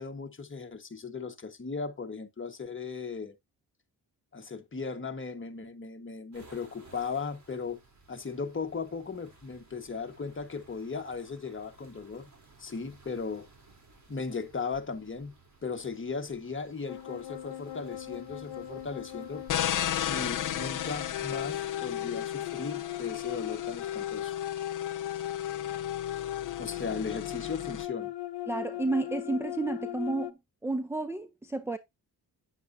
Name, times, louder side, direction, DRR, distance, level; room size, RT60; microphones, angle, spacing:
voice 1, 0.0-3.3 4.3-7.8 8.1-12.3 12.6-13.5 14.1-15.3 15.6-19.4 20.1-24.3 26.6-28.1, left 5 dB, 30° left, 1.4 m, -37 dB
sound 1, 6.3-21.7, right 3 dB, 45° right, 3.3 m, -57 dB
sound 2, 16.9-30.3, left 12 dB, 90° left, 0.8 m, -37 dB
sound 3, 19.5-27.9, left 11 dB, 50° left, 0.5 m, -36 dB
voice 2, 28.5-31.8, right 2 dB, 5° right, 0.5 m, -31 dB
9.3 x 8.1 x 2.7 m
wide cardioid pair, 105°, 41 cm